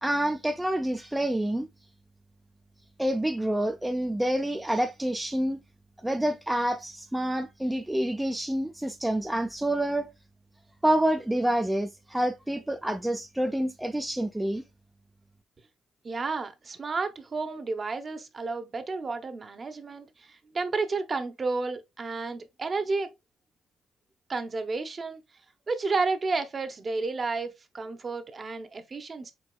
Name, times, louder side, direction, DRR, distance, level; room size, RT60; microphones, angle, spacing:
voice 1, 0.0-1.7 3.0-5.6 6.0-10.1 10.8-14.6, right 1 dB, 5° right, 0.4 m, -27 dB
voice 2, 16.0-23.1 24.3-25.2 25.7-29.3, right 3 dB, 35° right, 0.8 m, -31 dB
4.6 x 4.1 x 2.3 m
cardioid pair, 90°, 0 cm